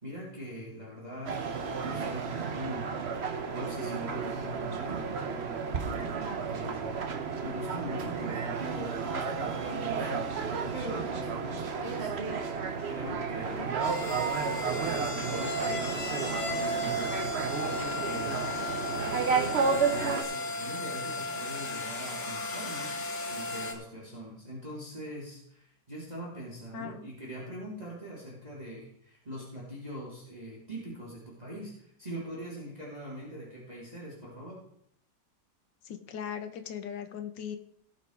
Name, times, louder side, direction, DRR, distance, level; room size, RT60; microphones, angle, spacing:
voice 1, 0.0-2.9 3.6-10.2 10.7-12.1 12.9-13.7 14.0-17.1 17.4-18.7 20.1-34.6, equal, 20° right, -5 dB, 3.0 m, -42 dB
sound 1, 1.3-20.2, right 5 dB, 45° right, 1.0 m, -32 dB
sound 2, 13.5-23.7, left 2 dB, 40° left, 1.6 m, -35 dB
voice 2, 26.7-27.1 35.8-37.6, left 8 dB, 75° left, 8 dB, 1.7 m, -38 dB
17.5 x 6.2 x 4.6 m, 0.69 s
omnidirectional pair, 2.0 m